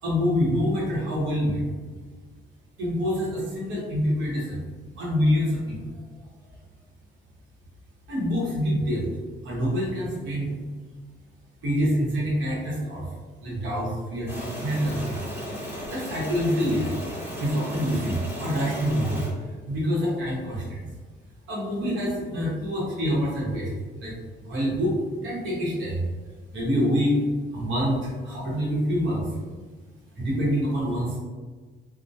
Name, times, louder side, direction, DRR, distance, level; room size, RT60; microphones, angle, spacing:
voice 1, 0.0-1.6 2.8-4.6 5.0-6.0 8.1-9.1 9.4-10.5 11.6-13.1 13.4-15.2 15.9-17.0 17.4-19.2 19.7-20.9 21.5-23.7 24.0-24.1 24.4-24.9 25.2-26.1 26.5-27.2 27.5-29.3 30.2-31.2, equal, 75° right, -5 dB, 1.0 m, -26 dB
sound 1, 14.3-19.3, equal, 10° right, 0.9 m, -35 dB
2.1 x 2.1 x 2.7 m, 1.4 s
cardioid pair, 90°, 20 cm